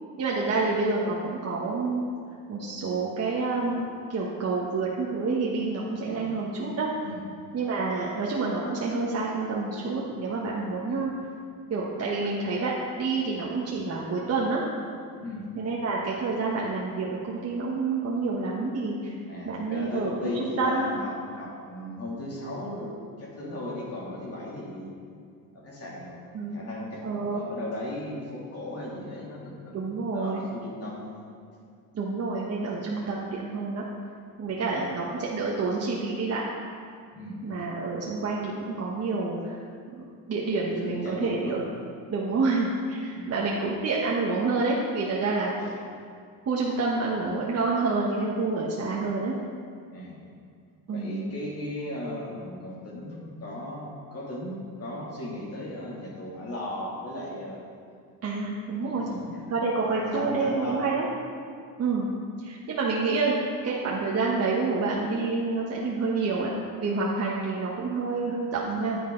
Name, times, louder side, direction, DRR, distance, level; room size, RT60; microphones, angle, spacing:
voice 1, 0.2-2.0 2.5-6.9 7.5-11.1 11.7-14.7 15.5-19.2 19.4-20.9 26.3-26.7 27.0-27.5 29.7-30.4 31.9-33.8 34.4-36.4 37.4-39.6 39.9-40.0 40.3-41.6 42.1-45.5 46.4-49.3 50.9-51.2 58.2-59.0 59.5-61.0 61.8-62.1 62.4-63.3 63.6-66.5 66.8-69.0, right 3 dB, 45° right, -4 dB, 1.3 m, -28 dB
voice 2, 6.0-6.3 7.0-7.2 10.9-11.0 15.2-15.5 19.3-24.9 25.5-26.2 26.5-29.7 30.1-31.2 34.5-34.7 37.1-37.4 40.6-41.5 43.1-43.3 45.6-45.7 49.9-50.2 50.9-57.6 58.8-59.4 59.8-60.9, left 1 dB, 45° left, -4 dB, 2.8 m, -36 dB
10.0 x 9.8 x 3.9 m, 2.2 s
cardioid pair, 120°, 35 cm